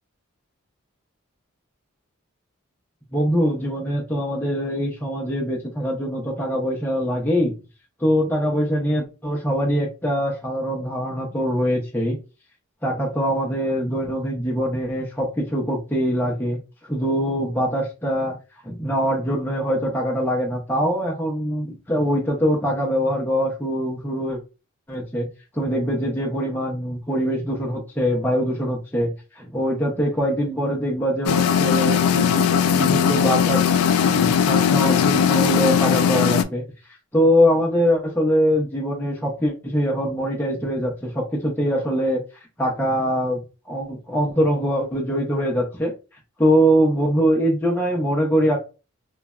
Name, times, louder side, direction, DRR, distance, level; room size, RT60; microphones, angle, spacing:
voice 1, 3.1-7.5 8.0-12.2 12.8-16.6 16.9-18.4 18.6-24.4 24.9-25.3 25.5-33.6 34.0-36.6 37.1-42.2 42.6-45.9 46.4-48.6, equal, 10° left, -3 dB, 0.5 m, -23 dB
sound 1, 31.3-36.4, left 8 dB, 80° left, 0.3 m, -19 dB
3.1 x 2.2 x 2.3 m, 0.31 s
head